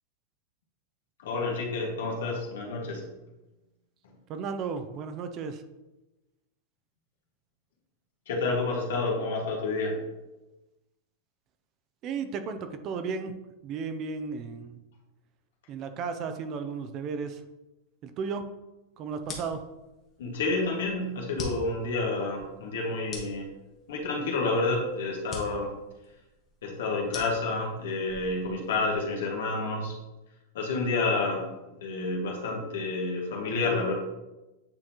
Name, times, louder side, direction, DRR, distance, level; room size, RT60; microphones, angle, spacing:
voice 1, 1.2-3.0 8.3-10.0 20.2-23.5 23.9-25.7 26.6-29.9 30.5-31.5 31.8-33.9, left 3 dB, 80° left, -1 dB, 1.7 m, -29 dB
voice 2, 4.3-5.6 12.0-13.4 13.6-14.8 15.7-17.4 18.0-18.5 19.0-19.6, right 5 dB, 25° right, 9 dB, 0.4 m, -34 dB
sound 1, 19.2-29.1, left 3 dB, 20° left, 1.0 m, -44 dB
8.8 x 3.7 x 3.0 m, 1.0 s
supercardioid pair, 175°, 0 cm